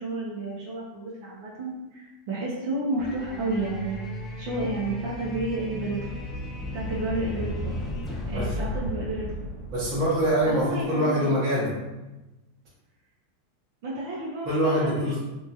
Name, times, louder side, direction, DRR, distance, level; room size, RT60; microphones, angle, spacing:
voice 1, 0.0-6.0 6.7-7.7 8.3-9.5 10.5-11.4 13.8-15.2, right 2 dB, 50° right, -5 dB, 0.7 m, -31 dB
sound 1, 3.0-10.9, left 1 dB, 10° left, 0.6 m, -35 dB
voice 2, 9.7-11.7 14.4-15.2, equal, 35° right, -11 dB, 1.0 m, -24 dB
2.8 x 2.3 x 2.8 m, 1.1 s
supercardioid pair, 155°, 0 cm